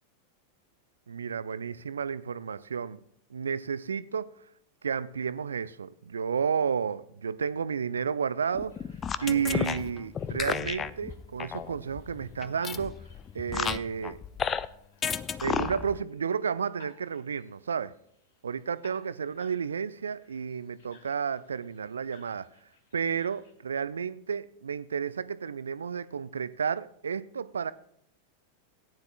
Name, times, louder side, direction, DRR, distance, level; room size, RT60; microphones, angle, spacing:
voice 1, 1.1-3.0 3.3-4.3 4.8-8.7 9.2-12.9 13.3-14.2 15.4-17.9 18.4-22.5 22.9-27.7, right 6 dB, 70° right, 0.4 m, -32 dB
sound 1, 8.5-14.7 15.0-16.0, left 7 dB, 25° left, 0.4 m, -33 dB
sound 2, 8.7-23.5, left 4 dB, 55° left, 1.9 m, -59 dB
18.0 x 9.6 x 2.4 m
figure-of-eight pair, 90°, 0 cm